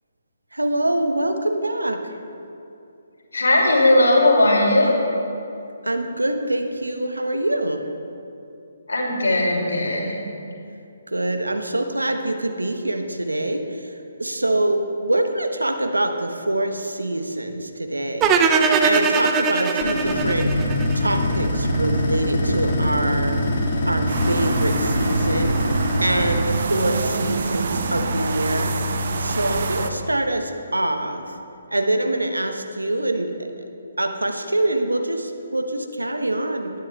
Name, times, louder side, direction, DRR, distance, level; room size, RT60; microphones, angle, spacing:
voice 1, 0.5-2.0 5.8-7.8 11.1-13.9 14.2-20.5 20.9-23.4 23.8-25.6 26.0-28.7 29.2-31.4 31.7-33.3 34.0-36.7, right 1 dB, 90° right, 5 dB, 1.0 m, -24 dB
voice 2, 3.3-5.0 8.9-10.2, left 1 dB, 75° left, -2 dB, 2.8 m, -18 dB
sound 1, 18.2-21.4, right 5 dB, 20° right, 0.6 m, -20 dB
sound 2, 19.8-26.4, left 1 dB, 45° left, 2.2 m, -23 dB
sound 3, 24.1-29.9, right 3 dB, 55° right, 0.9 m, -26 dB
19.5 x 9.8 x 2.4 m, 2.6 s
figure-of-eight pair, 140°, 0 cm